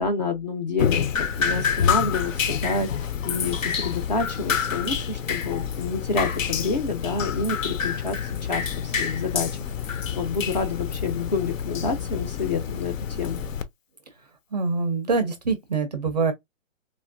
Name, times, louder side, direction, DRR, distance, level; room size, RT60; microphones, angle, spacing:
voice 1, 0.0-8.2 8.5-9.5 9.9-13.4, left 4 dB, 35° left, 0.5 m, -28 dB
Drip, 0.8-13.6, left 7 dB, 70° left, 0.7 m, -27 dB
voice 2, 14.5-16.3, right 4 dB, 35° right, 0.4 m, -24 dB
3.2 x 2.5 x 2.3 m
hypercardioid pair, 155°, 40 cm